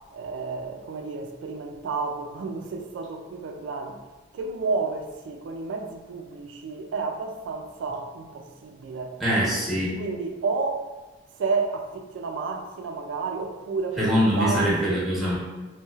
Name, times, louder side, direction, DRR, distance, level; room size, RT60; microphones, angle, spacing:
voice 1, 0.1-4.0 4.3-9.2 9.5-9.7 10.0-10.9 11.4-15.0, right 4 dB, 85° right, 0.3 m, -31 dB
voice 2, 9.2-10.0 14.0-15.4, equal, ahead, 0.9 m, -23 dB
3.0 x 3.0 x 2.3 m
head